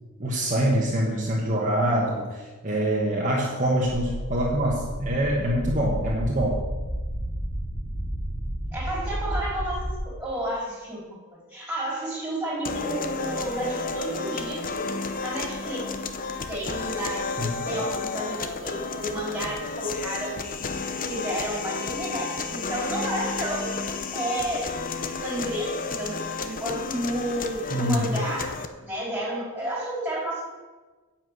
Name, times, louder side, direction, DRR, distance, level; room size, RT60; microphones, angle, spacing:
voice 1, 0.2-6.6 17.4-17.6 27.7-28.1, right 1 dB, 35° right, -3 dB, 1.4 m, -25 dB
sound 1, 3.8-10.0, equal, 10° left, 2.8 m, -31 dB
voice 2, 8.7-14.6 15.2-15.9 16.5-17.3 17.6-20.4 21.1-23.7 24.1-24.7 25.0-30.4, right 1 dB, 5° right, -4 dB, 4.1 m, -31 dB
sound 2, 12.7-28.7, left 4 dB, 40° left, 0.8 m, -32 dB
10.0 x 5.8 x 8.2 m, 1.3 s
head